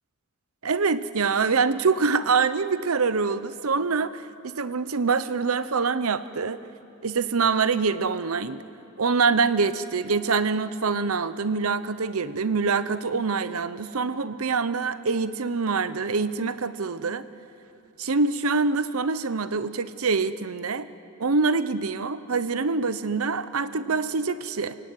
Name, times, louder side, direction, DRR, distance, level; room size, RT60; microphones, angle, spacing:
voice 1, 0.6-6.6 7.0-8.6 9.0-17.2 18.0-20.9 21.2-24.8, right 4 dB, 85° right, 14 dB, 0.8 m, -25 dB
28.5 x 17.0 x 9.3 m, 2.9 s
head